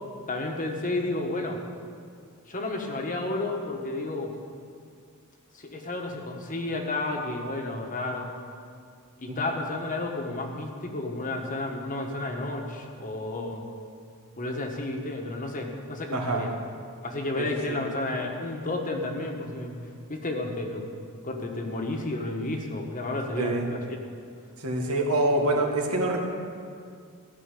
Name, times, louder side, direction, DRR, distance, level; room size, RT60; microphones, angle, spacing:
voice 1, 0.3-1.6 2.5-4.3 5.5-8.3 9.2-13.6 14.4-16.5 17.0-19.8 20.1-20.9 21.2-23.8, left 2 dB, 35° left, 2 dB, 1.4 m, -31 dB
voice 2, 16.1-16.5 17.4-17.8 23.4-23.7 24.6-26.3, right 2 dB, 75° right, 1 dB, 1.9 m, -26 dB
14.0 x 6.3 x 10.0 m, 2.2 s
head